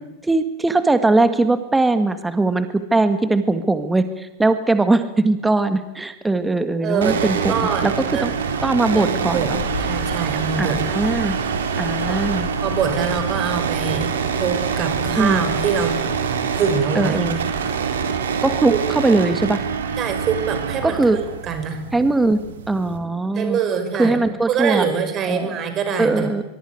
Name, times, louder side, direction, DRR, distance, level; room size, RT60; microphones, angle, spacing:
voice 1, 0.2-7.9 8.2-8.3 8.6-9.6 10.6-11.4 11.8-12.5 15.2-15.4 17.0-17.4 18.4-19.6 20.8-21.2 21.9-22.4 22.7-23.6 24.0-24.9 25.3-25.6 26.0-26.4, right 2 dB, 10° right, 10 dB, 1.9 m, -20 dB
voice 2, 6.8-8.3 8.9-9.5 9.8-10.8 12.1-12.3 12.6-16.0 16.5-17.3 18.7-18.8 20.0-21.9 23.3-24.2 24.5-26.3, right 6 dB, 30° right, 8 dB, 5.7 m, -24 dB
sound 1, 7.0-23.0, right 6 dB, 65° right, 3.7 m, -25 dB
sound 2, 9.3-16.0, left 7 dB, 55° left, 4.9 m, -35 dB
23.5 x 23.5 x 9.6 m, 0.93 s
figure-of-eight pair, 90°, 0 cm